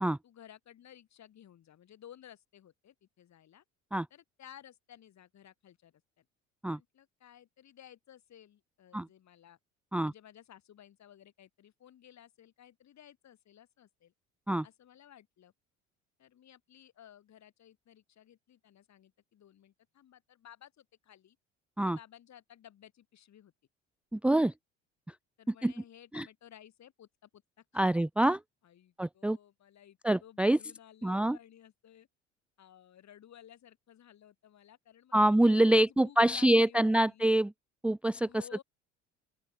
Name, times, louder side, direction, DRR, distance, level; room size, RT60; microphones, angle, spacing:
voice 1, 0.2-3.6 4.1-6.3 6.7-9.6 10.0-14.1 14.6-15.5 16.2-21.4 21.8-23.5 25.4-27.9 28.6-32.1 32.6-37.3 38.3-38.6, left 10 dB, 45° left, 6.9 m, -56 dB
voice 2, 24.1-24.5 25.6-25.7 26.1-26.2 27.7-28.4 29.0-29.4 30.0-30.6 31.0-31.4 35.1-37.5 37.8-38.3, right 1 dB, 5° right, 0.6 m, -25 dB
open air
figure-of-eight pair, 60°, 39 cm